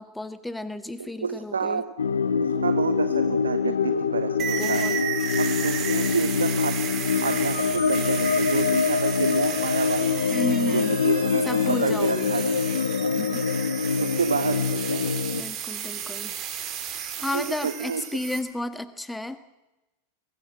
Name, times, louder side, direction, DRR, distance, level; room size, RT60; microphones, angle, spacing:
voice 1, 0.0-1.8 4.6-4.9 10.3-11.0 11.4-12.4 13.0-13.4 15.3-16.3 16.9-19.4, left 1 dB, 5° left, 12 dB, 1.5 m, -32 dB
voice 2, 1.0-1.9 2.4-4.9 5.4-10.2 10.7-11.4 11.7-12.5 13.0-13.2 14.0-15.0 17.3-18.0, right 6 dB, 70° right, 12 dB, 0.9 m, -29 dB
sound 1, 2.0-15.4, left 6 dB, 70° left, 1.1 m, -25 dB
sound 2, 4.4-18.4, right 8 dB, 35° right, 3.6 m, -33 dB
23.0 x 17.5 x 7.5 m, 1.0 s
figure-of-eight pair, 90°, 0 cm